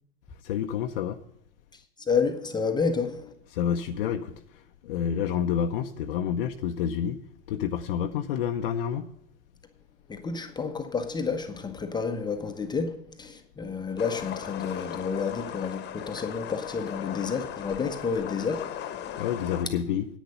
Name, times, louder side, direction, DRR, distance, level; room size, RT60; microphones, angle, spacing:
voice 1, 0.4-1.2 3.5-7.2 7.5-9.1 19.2-20.1, left 8 dB, 55° left, 0.8 m, -29 dB
voice 2, 1.7-3.3 10.1-19.2, left 5 dB, 15° left, 1.0 m, -30 dB
sound 1, 14.0-19.6, left 10 dB, 30° left, 1.3 m, -37 dB
10.5 x 9.3 x 5.6 m
figure-of-eight pair, 90°, 33 cm